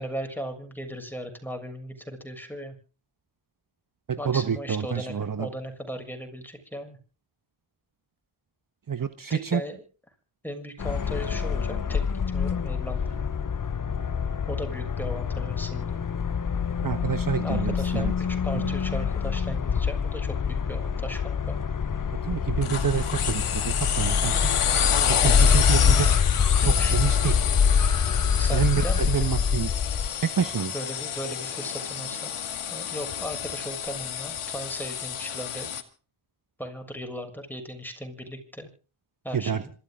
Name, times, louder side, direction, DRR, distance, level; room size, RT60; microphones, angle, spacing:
voice 1, 0.0-2.8 4.2-7.0 9.3-9.8 10.4-12.0 12.3-13.3 14.5-16.0 17.4-21.6 26.8-27.0 28.4-29.3 30.7-32.3 32.7-35.7 36.6-38.7 39.2-39.7, equal, 5° left, 5 dB, 6.9 m, -37 dB
voice 2, 4.1-5.5 8.9-9.6 16.8-18.1 18.6-18.7 22.2-24.5 25.1-26.1 26.6-27.4 28.5-29.7 30.2-30.7 39.3-39.6, right 7 dB, 40° right, 11 dB, 1.3 m, -28 dB
sound 1, 10.8-30.1, left 6 dB, 40° left, 1.1 m, -25 dB
sound 2, 22.6-35.8, left 8 dB, 80° left, 2.4 m, -29 dB
26.5 x 13.5 x 3.7 m, 0.38 s
cardioid pair, 70°, 49 cm